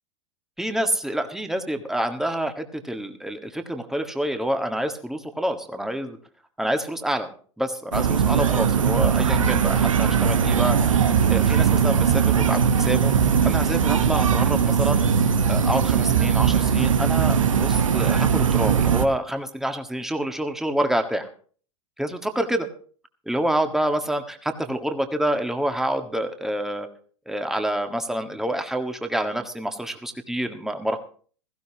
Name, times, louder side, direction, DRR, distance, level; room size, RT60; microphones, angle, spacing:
voice 1, 0.6-6.2 6.6-7.3 7.6-10.8 11.3-13.1 13.4-15.0 15.5-21.3 22.0-22.7 23.3-26.9 27.3-31.0, right 1 dB, 5° right, 6 dB, 1.6 m, -27 dB
sound 1, 7.9-19.1, right 7 dB, 85° right, 1.1 m, -20 dB
17.0 x 15.0 x 2.9 m, 0.42 s
hypercardioid pair, 95°, 16 cm